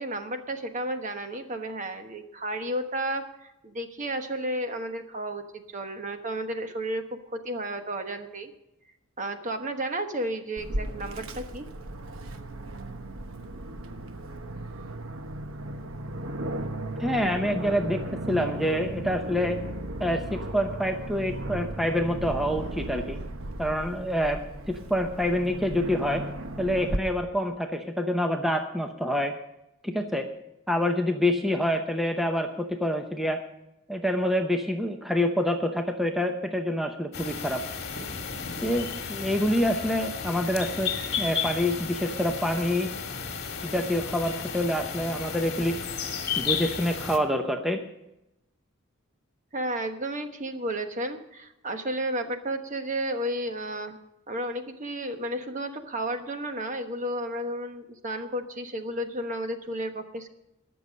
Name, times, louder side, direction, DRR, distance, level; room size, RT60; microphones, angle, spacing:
voice 1, 0.0-8.5 9.2-11.7 49.5-54.0 54.3-60.3, right 1 dB, 35° right, 6 dB, 1.2 m, -32 dB
Aircraft, 10.6-27.0, right 1 dB, 70° right, 1.0 m, -36 dB
voice 2, 17.0-19.6 20.0-23.2 23.6-24.4 24.7-26.2 26.6-29.3 29.8-30.3 30.7-33.4 33.9-37.6 38.6-40.9 41.2-42.9 43.6-45.8 46.4-47.8, equal, ahead, 4 dB, 0.7 m, -27 dB
sound 1, 37.1-47.2, left 6 dB, 50° left, 1.9 m, -33 dB
20.5 x 6.9 x 5.2 m, 0.89 s
head